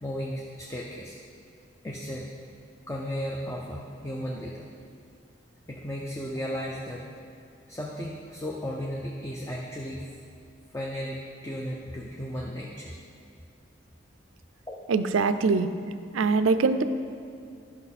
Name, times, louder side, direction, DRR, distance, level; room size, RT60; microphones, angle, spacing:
voice 1, 0.0-1.1 1.8-2.3 2.9-4.7 5.7-7.1 7.7-10.0 10.7-12.9 14.7-14.8, equal, 15° left, -2 dB, 0.5 m, -35 dB
voice 2, 14.9-15.7 16.1-16.8, right 4 dB, 85° right, 11 dB, 0.4 m, -23 dB
11.5 x 6.0 x 4.1 m, 2.4 s
head